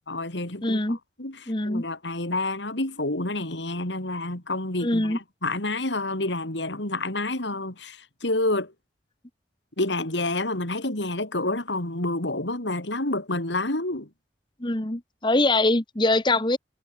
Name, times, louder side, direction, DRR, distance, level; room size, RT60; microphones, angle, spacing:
voice 1, 0.1-8.7 9.8-14.1, left 2 dB, 80° left, 3.9 m, -29 dB
voice 2, 0.6-1.0 1.5-1.8 4.8-5.2 14.6-16.6, left 2 dB, 25° left, 1.4 m, -23 dB
head